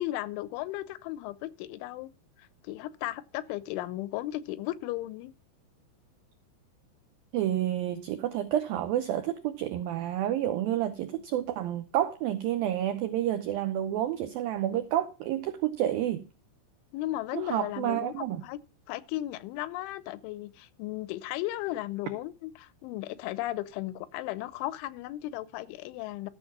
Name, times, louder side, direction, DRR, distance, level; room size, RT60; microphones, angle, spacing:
voice 1, 0.0-2.1 2.4-5.3 16.9-18.6 18.9-26.3, left 16 dB, 90° left, 3.2 m, -35 dB
voice 2, 7.3-16.2 17.3-18.4, right 12 dB, 90° right, 2.0 m, -29 dB
14.0 x 6.6 x 5.8 m
omnidirectional pair, 5.3 m